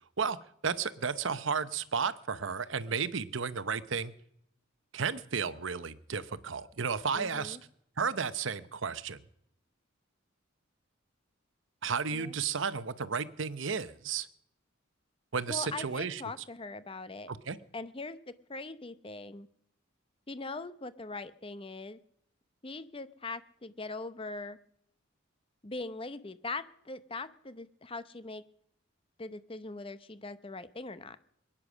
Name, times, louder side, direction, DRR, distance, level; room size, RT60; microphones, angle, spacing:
voice 1, 0.6-4.1 4.9-7.6 8.0-9.2 11.8-14.3 15.3-16.2 17.3-17.6, right 6 dB, 65° right, 14 dB, 0.8 m, -33 dB
voice 2, 7.1-7.6 12.1-12.4 15.5-17.3 17.7-19.5 20.3-22.0 22.6-24.6 25.6-28.4 29.2-31.2, left 3 dB, 25° left, 14 dB, 0.7 m, -41 dB
21.5 x 10.0 x 6.2 m, 0.73 s
head